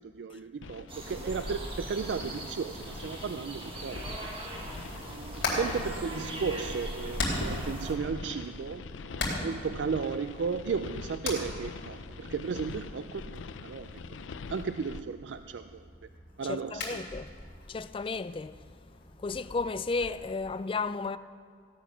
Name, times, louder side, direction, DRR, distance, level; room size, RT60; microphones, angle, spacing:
voice 1, 0.0-4.3 5.1-14.2 14.5-15.9 16.4-17.0, right 5 dB, 70° right, 0.4 m, -35 dB
sound 1, 0.6-15.0, left 4 dB, 85° left, 0.5 m, -44 dB
sound 2, 0.9-7.9, right 1 dB, 30° right, 1.5 m, -40 dB
Hammer, 4.9-20.2, left 2 dB, 65° left, 3.8 m, -40 dB
voice 2, 16.4-17.3 17.7-18.5 19.2-21.2, left 4 dB, 30° left, 0.3 m, -33 dB
17.0 x 9.2 x 6.1 m
head